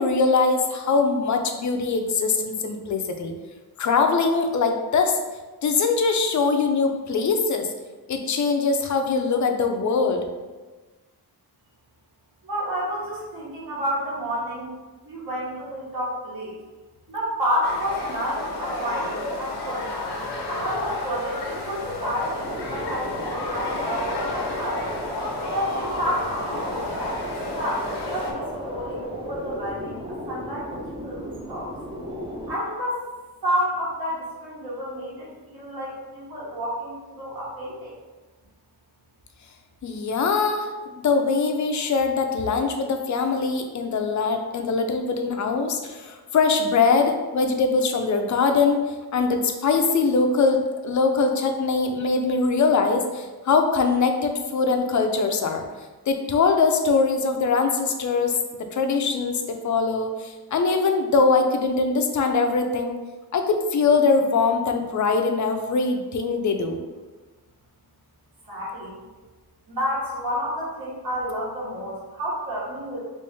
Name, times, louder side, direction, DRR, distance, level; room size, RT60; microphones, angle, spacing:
voice 1, 0.0-3.3 3.8-5.2 5.6-7.7 8.1-10.2 39.8-40.7 41.0-48.8 49.1-55.6 56.1-58.4 58.7-62.9 63.3-66.8, left 4 dB, 50° left, 5 dB, 0.4 m, -22 dB
voice 2, 12.4-14.7 15.0-16.6 17.1-19.9 20.4-23.1 23.4-24.9 25.5-31.7 32.5-33.0 33.4-37.9 68.4-68.9 69.7-73.0, equal, 60° right, -7 dB, 1.3 m, -30 dB
sound 1, 17.6-28.3, left 2 dB, 85° left, 0.7 m, -32 dB
sound 2, 22.4-32.6, equal, 15° right, 0.5 m, -33 dB
3.1 x 3.0 x 3.3 m, 1.2 s
wide cardioid pair, 140°, 39 cm